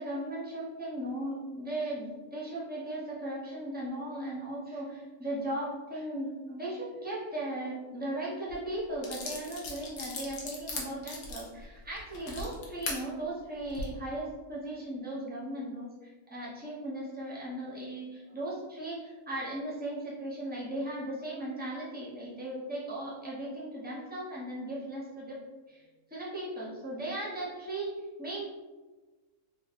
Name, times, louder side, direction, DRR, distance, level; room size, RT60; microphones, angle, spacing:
voice 1, 0.0-25.4 25.7-25.8 26.1-28.5, right 1 dB, 15° right, -7 dB, 0.4 m, -37 dB
sound 1, 8.5-8.6 9.0-13.0 13.6-13.8, left 3 dB, 80° left, 1.2 m, -38 dB
3.9 x 2.5 x 2.4 m, 1.2 s
omnidirectional pair, 1.6 m